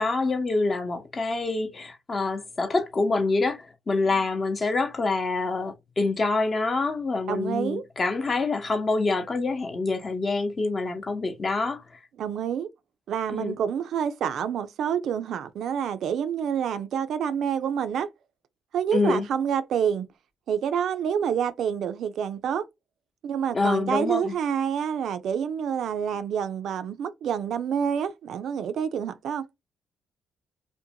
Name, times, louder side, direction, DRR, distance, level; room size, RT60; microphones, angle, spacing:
voice 1, 0.0-12.0 13.3-13.6 18.9-19.3 23.5-24.4, left 3 dB, 35° left, 0.7 m, -26 dB
voice 2, 7.3-7.8 12.2-12.7 13.1-18.1 18.7-20.1 20.5-22.6 23.2-29.5, right 8 dB, 70° right, 0.3 m, -28 dB
2.6 x 2.1 x 2.7 m
cardioid pair, 90°, 0 cm